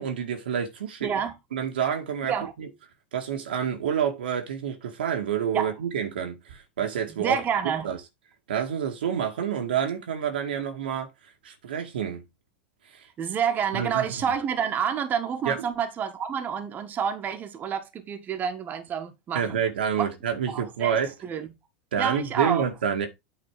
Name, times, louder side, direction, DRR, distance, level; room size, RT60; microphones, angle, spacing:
voice 1, 0.0-1.1 1.5-2.7 3.1-7.4 7.8-8.0 8.5-11.1 11.4-12.2 12.9-13.0 13.7-14.1 15.5-15.6 19.3-21.1 21.9-23.1, right 8 dB, 75° right, 2.0 m, -28 dB
voice 2, 1.0-1.3 2.3-2.5 5.5-5.7 7.2-7.9 13.2-19.6 20.0-20.1 20.5-21.5 22.0-22.7, right 7 dB, 35° right, 1.6 m, -28 dB
9.0 x 4.2 x 4.9 m
hypercardioid pair, 95°, 5 cm